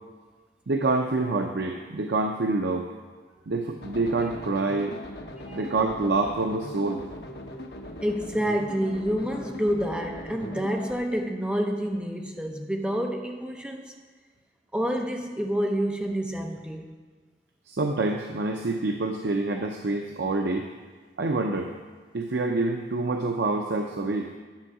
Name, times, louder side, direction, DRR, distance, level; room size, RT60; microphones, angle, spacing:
voice 1, 0.7-2.9 3.5-5.0 5.5-7.0 17.7-20.7 21.2-21.7 22.1-24.3, right 3 dB, 75° right, 3 dB, 0.6 m, -26 dB
sound 1, 3.8-11.0, left 1 dB, 65° left, 1.0 m, -40 dB
voice 2, 8.0-13.9 14.7-16.9, equal, 5° right, 2 dB, 0.7 m, -28 dB
10.5 x 6.2 x 4.8 m, 1.4 s
head